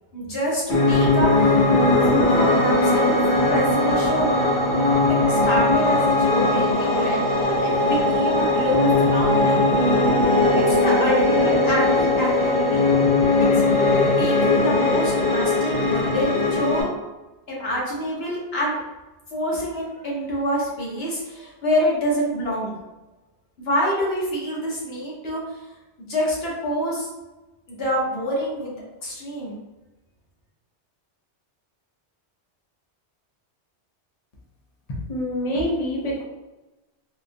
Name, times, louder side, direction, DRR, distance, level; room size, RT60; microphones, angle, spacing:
voice 1, 0.1-1.6 2.1-3.2 3.5-4.3 5.1-9.6 10.5-12.9 13.4-13.6 14.2-16.9 17.5-18.8 19.3-22.7 23.6-25.4 26.0-27.1 27.7-28.8 29.0-29.6, equal, 60° left, -4 dB, 1.2 m, -26 dB
Piano, 0.7-16.8, left 2 dB, 85° left, 1.3 m, -19 dB
voice 2, 35.1-36.2, equal, 45° left, -3 dB, 0.6 m, -25 dB
3.5 x 2.3 x 2.6 m, 1.1 s
omnidirectional pair, 1.2 m